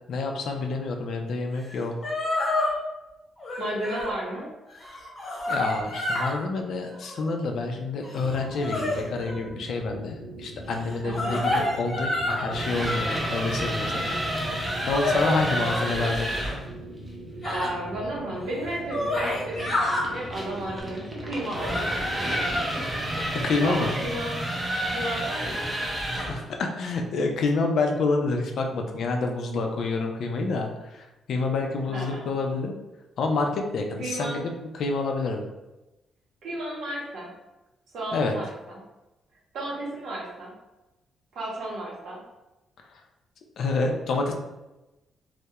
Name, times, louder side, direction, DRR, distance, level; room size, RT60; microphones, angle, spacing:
voice 1, 0.1-2.1 5.5-14.1 14.9-16.3 23.3-24.0 26.1-32.7 33.2-35.4 38.1-38.4 42.9-43.0 43.6-44.3, left 3 dB, 65° left, 3 dB, 0.4 m, -28 dB
sound 1, 1.7-1.8 2.0-2.8 3.4-4.1 4.7-6.4 6.8-7.3 8.0-9.4 10.8-12.5 13.0-13.6 14.2-15.9 17.4-17.7 18.3-18.4 18.7-20.0 20.6-20.8, left 1 dB, 25° left, 0.9 m, -29 dB
voice 2, 3.6-4.5 11.0-11.5 17.4-22.0 23.6-24.4 24.9-25.7 31.9-32.2 34.0-34.5 36.4-37.3 37.9-38.8 39.5-40.5 41.3-42.2, right 1 dB, 75° right, -3 dB, 0.7 m, -33 dB
sound 2, 8.2-22.4, right 1 dB, 90° right, 0.4 m, -41 dB
sound 3, 12.4-16.6 19.2-26.4, equal, 10° right, 0.6 m, -30 dB
2.3 x 2.0 x 2.8 m, 1.0 s
cardioid pair, 125°, 0 cm